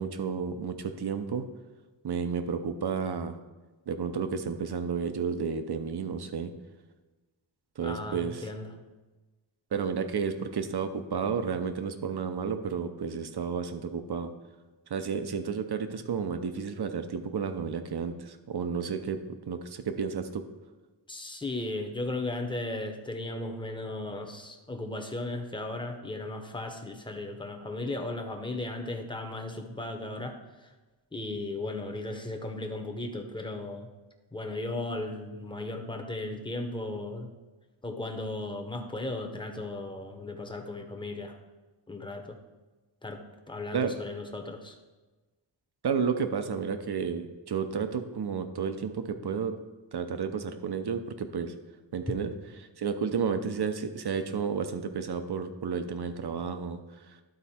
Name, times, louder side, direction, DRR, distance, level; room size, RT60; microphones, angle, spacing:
voice 1, 0.0-1.4 2.0-3.4 3.9-6.5 7.8-8.5 9.7-14.3 14.9-20.4 43.7-43.9 45.8-49.5 49.9-51.5 51.9-52.3 52.8-56.8, right 6 dB, 60° right, 8 dB, 0.7 m, -31 dB
voice 2, 7.8-8.7 21.1-30.7 31.1-33.9 34.3-37.3 37.8-41.3 41.9-42.4 43.0-43.2 43.5-44.8, left 2 dB, 10° left, 4 dB, 0.9 m, -36 dB
12.0 x 4.1 x 4.3 m, 1.2 s
wide cardioid pair, 95°, 46 cm